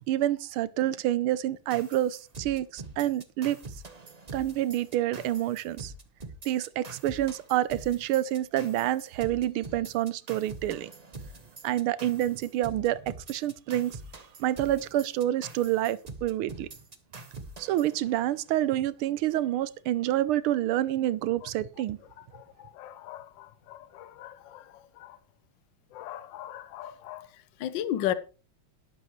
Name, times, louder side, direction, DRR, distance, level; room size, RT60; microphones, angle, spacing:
voice 1, 0.1-3.6 4.3-5.9 6.4-10.9 11.6-14.0 14.4-16.7 17.6-22.0, right 13 dB, 90° right, 1.6 m, -28 dB
sound 1, 1.7-18.6, right 2 dB, 30° right, 0.8 m, -45 dB
voice 2, 22.2-25.2 25.9-28.1, left 11 dB, 70° left, 1.4 m, -36 dB
12.5 x 11.0 x 3.2 m
omnidirectional pair, 2.3 m